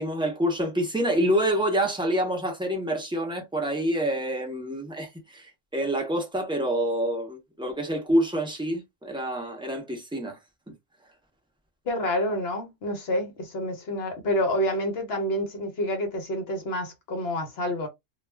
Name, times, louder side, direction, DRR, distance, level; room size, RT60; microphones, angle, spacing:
voice 1, 0.0-10.4, equal, 5° right, 0.4 m, -27 dB
voice 2, 11.9-17.9, equal, 60° left, 0.9 m, -28 dB
2.3 x 2.2 x 3.3 m
omnidirectional pair, 1.3 m